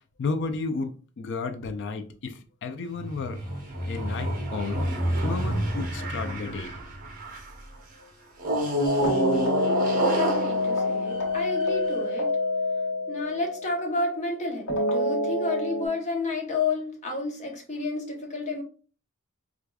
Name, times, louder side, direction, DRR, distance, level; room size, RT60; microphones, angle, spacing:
voice 1, 0.2-3.4 3.8-4.9 5.2-6.8, left 4 dB, 60° left, 0.4 m, -32 dB
sound 1, 3.0-7.6 8.4-12.0, right 1 dB, 40° right, 0.8 m, -29 dB
sound 2, 8.8-14.0 14.7-15.9, left 2 dB, 90° left, 1.0 m, -27 dB
voice 2, 10.2-12.3 13.1-18.6, left 3 dB, 35° left, 0.9 m, -30 dB
4.6 x 2.5 x 2.3 m
head